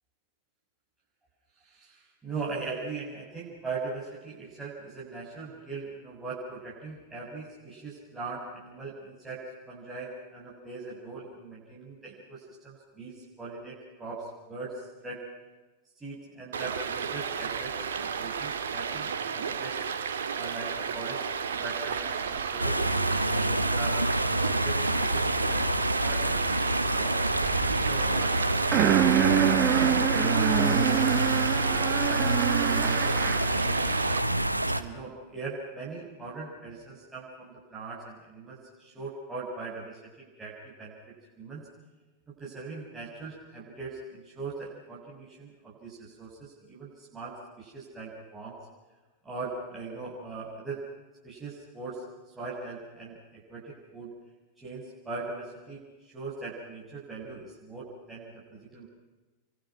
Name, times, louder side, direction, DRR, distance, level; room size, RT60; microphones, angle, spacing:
voice 1, 1.6-15.2 16.0-19.9 20.3-21.2 21.5-23.9 24.4-27.2 27.8-30.9 31.1-33.9 34.6-41.7 42.4-48.6 49.2-50.8 51.2-52.0 52.4-54.1 54.6-58.9, right 3 dB, 15° right, -7 dB, 7.3 m, -40 dB
Stream, 16.5-34.2, right 6 dB, 65° right, 2.0 m, -33 dB
sound 1, 22.6-34.8, right 1 dB, 85° right, 1.1 m, -27 dB
sound 2, 28.7-33.6, right 11 dB, 35° right, 1.6 m, -26 dB
29.5 x 24.0 x 6.0 m, 1.2 s
figure-of-eight pair, 90°, 0 cm